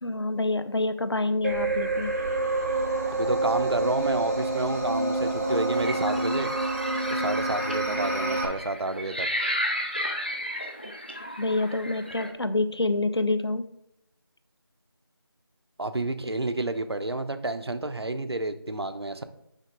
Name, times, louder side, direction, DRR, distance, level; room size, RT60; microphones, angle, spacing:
voice 1, 0.0-2.2 7.8-8.1 11.2-13.7, left 2 dB, 85° left, 12 dB, 0.6 m, -27 dB
sound 1, 1.4-8.4, right 2 dB, 35° right, 1.4 m, -27 dB
voice 2, 3.1-6.5 7.1-9.3 15.8-19.2, right 2 dB, 80° right, 10 dB, 0.7 m, -30 dB
sound 2, 5.7-12.3, equal, 25° left, 0.5 m, -34 dB
6.4 x 5.3 x 3.7 m, 0.80 s
figure-of-eight pair, 170°, 13 cm